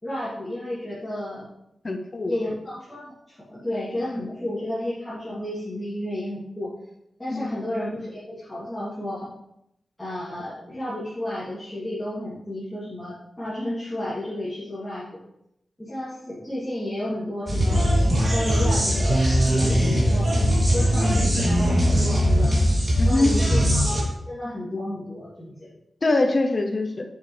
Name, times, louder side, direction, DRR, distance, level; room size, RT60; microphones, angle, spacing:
voice 1, 0.0-1.5 2.2-6.7 7.2-9.3 10.0-15.2 15.8-17.9 18.3-20.4 20.7-22.6 23.1-24.0 24.3-25.7, left 1 dB, 10° left, -12 dB, 2.9 m, -32 dB
voice 2, 1.8-2.3 7.3-7.5 21.0-21.2 23.0-23.3 26.0-27.0, left 2 dB, 35° left, 5 dB, 0.8 m, -23 dB
sound 1, 17.5-24.0, equal, 30° right, 3.0 m, -20 dB
9.5 x 7.5 x 3.4 m, 0.80 s
wide cardioid pair, 160°, 0 cm